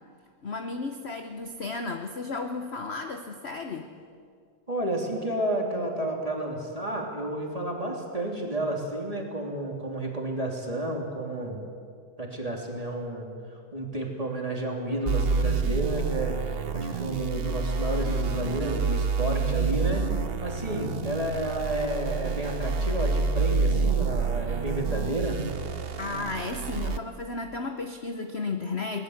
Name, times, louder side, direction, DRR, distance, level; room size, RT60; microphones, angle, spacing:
voice 1, 0.4-3.9 26.0-29.0, left 3 dB, 45° left, 6 dB, 0.9 m, -33 dB
voice 2, 4.7-11.6 12.2-16.4 16.7-20.1 20.4-25.4, right 1 dB, 15° right, 0 dB, 3.2 m, -31 dB
sound 1, 15.1-27.0, right 4 dB, 60° right, 0.6 m, -28 dB
21.5 x 19.5 x 8.1 m, 2.2 s
omnidirectional pair, 2.3 m